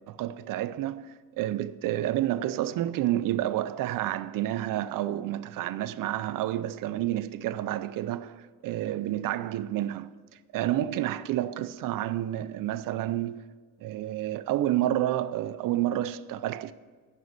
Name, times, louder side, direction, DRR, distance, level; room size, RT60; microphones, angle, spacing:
voice 1, 0.0-10.1 10.5-13.4 13.8-16.7, right 13 dB, 70° right, 0.5 m, -29 dB
11.0 x 5.4 x 8.1 m
cardioid pair, 160°, 34 cm